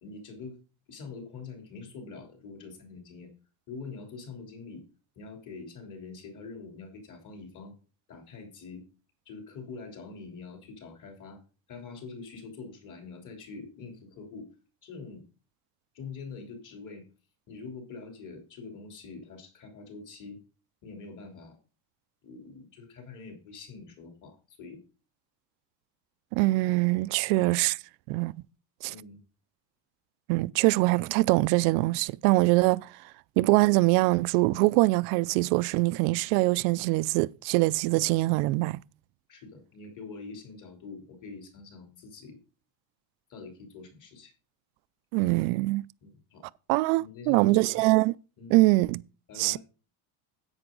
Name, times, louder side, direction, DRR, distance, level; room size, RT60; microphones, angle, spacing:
voice 1, 0.0-0.6 0.9-3.3 3.7-4.8 5.2-7.8 8.1-8.9 9.3-11.4 11.7-14.5 14.8-15.2 15.9-17.1 17.5-20.4 20.8-21.6 22.2-24.8 27.2-27.6 28.9-29.2 39.3-42.4 43.3-44.3 46.0-46.4 47.0-47.8 48.4-48.6 49.3-49.6, left 4 dB, 40° left, 3.4 m, -44 dB
voice 2, 26.3-27.8 28.1-28.3 28.8-28.9 30.3-32.9 33.4-38.8 45.1-45.8 46.7-48.1 48.5-49.0 49.4-49.6, right 22 dB, 80° right, 0.5 m, -23 dB
10.5 x 8.7 x 3.9 m
cardioid pair, 160°, 48 cm